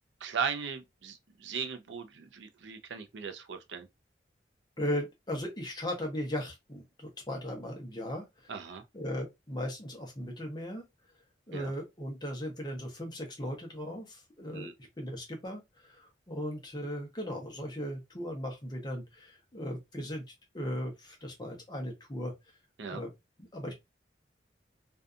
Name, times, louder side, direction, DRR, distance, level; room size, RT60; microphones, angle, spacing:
voice 1, 0.2-3.9 8.5-8.8 11.5-11.7 14.5-14.7 22.8-23.0, right 6 dB, 80° right, 0.5 m, -37 dB
voice 2, 4.8-8.5 8.9-10.8 11.5-14.7 15.0-22.3 22.8-23.1 23.4-23.7, equal, 25° left, 0.7 m, -37 dB
2.6 x 2.3 x 2.4 m
head